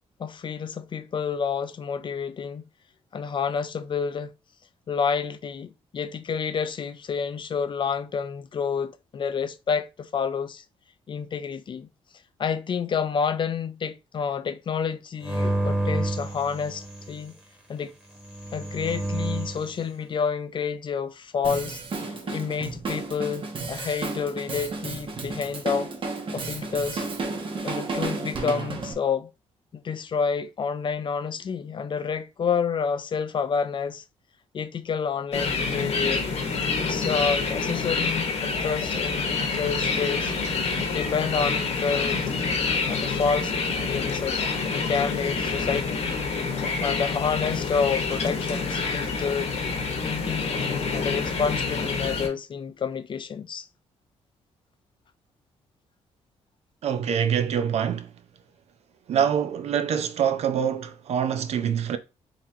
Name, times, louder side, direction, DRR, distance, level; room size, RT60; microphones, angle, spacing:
voice 1, 0.2-2.7 3.1-4.3 4.9-10.6 11.1-11.9 12.4-17.3 17.7-17.9 18.5-25.9 26.3-27.1 27.6-29.3 29.7-34.0 34.5-36.3 36.8-40.3 40.8-42.2 42.9-44.4 44.7-46.2 46.8-49.5 50.0-53.7, left 6 dB, 45° left, 0.4 m, -29 dB
sound 1, 15.2-17.2 18.2-19.7, right 1 dB, 10° right, 1.4 m, -29 dB
Drum kit, 21.4-28.9, right 3 dB, 45° right, 0.9 m, -32 dB
sound 2, 35.3-52.3, left 4 dB, 65° left, 1.1 m, -27 dB
voice 2, 56.8-58.1 59.1-62.0, right 8 dB, 65° right, 0.5 m, -25 dB
3.9 x 2.9 x 2.7 m
cardioid pair, 75°, 12 cm